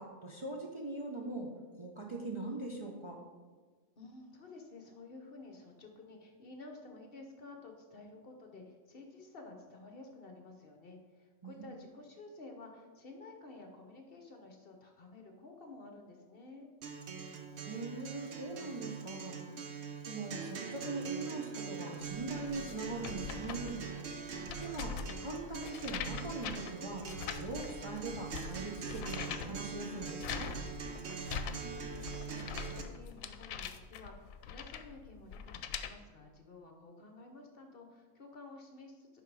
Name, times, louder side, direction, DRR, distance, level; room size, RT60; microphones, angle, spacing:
voice 1, 0.0-3.2 11.4-11.7 17.6-19.4 20.1-23.8 24.6-27.1 27.4-30.5, right 2 dB, 30° right, -1 dB, 0.6 m, -41 dB
voice 2, 4.0-16.7 31.4-39.2, left 2 dB, 50° left, 3 dB, 0.9 m, -52 dB
Acoustic guitar, 16.8-32.8, right 6 dB, 60° right, 1.0 m, -43 dB
sound 1, 22.1-35.9, left 7 dB, 80° left, 1.0 m, -43 dB
10.5 x 3.9 x 4.7 m, 1.4 s
omnidirectional pair, 1.4 m